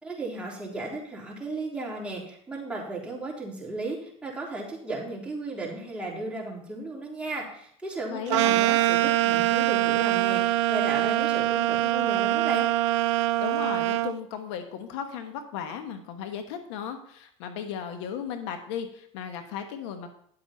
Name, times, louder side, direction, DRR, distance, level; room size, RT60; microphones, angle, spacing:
voice 1, 0.0-12.7, right 2 dB, 5° right, -4 dB, 3.6 m, -35 dB
voice 2, 8.1-8.6 13.4-20.1, left 8 dB, 75° left, 7 dB, 1.2 m, -35 dB
sound 1, 8.3-14.1, right 16 dB, 75° right, 0.6 m, -24 dB
11.0 x 7.8 x 4.4 m, 0.65 s
hypercardioid pair, 95°, 15 cm